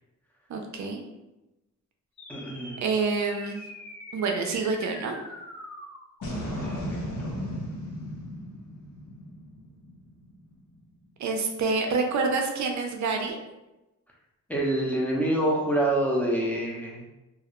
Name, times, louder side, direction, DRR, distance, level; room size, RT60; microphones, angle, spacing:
voice 1, 0.5-1.0 2.8-3.6 4.1-5.2 11.2-13.4, right 4 dB, 70° right, 3 dB, 0.5 m, -27 dB
sound 1, 2.2-10.8, equal, 85° left, 0.7 m, -38 dB
voice 2, 2.3-2.8 6.4-7.3 14.5-17.0, right 1 dB, 5° left, -3 dB, 0.6 m, -27 dB
2.4 x 2.0 x 2.9 m, 1.0 s
cardioid pair, 85°, 30 cm